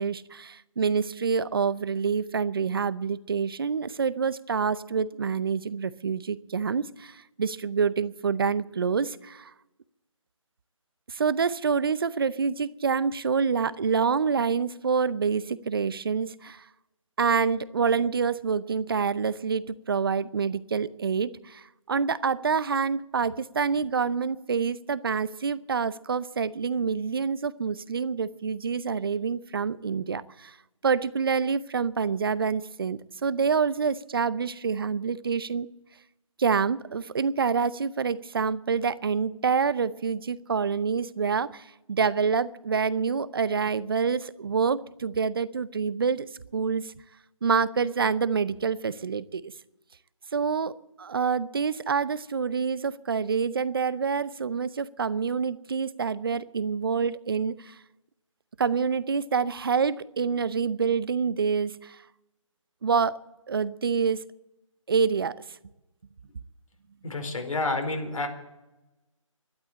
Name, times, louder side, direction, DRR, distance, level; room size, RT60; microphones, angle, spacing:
voice 1, 0.0-9.5 11.1-16.6 17.2-30.6 30.8-35.7 36.4-46.3 46.5-46.9 47.4-49.5 50.3-57.8 58.6-62.0 62.8-63.2 63.5-64.2 64.9-65.4, right 5 dB, 45° right, 18 dB, 0.6 m, -27 dB
voice 2, 67.0-68.3, left 2 dB, 80° left, 5 dB, 4.6 m, -29 dB
12.5 x 11.5 x 8.7 m, 0.97 s
figure-of-eight pair, 165°, 17 cm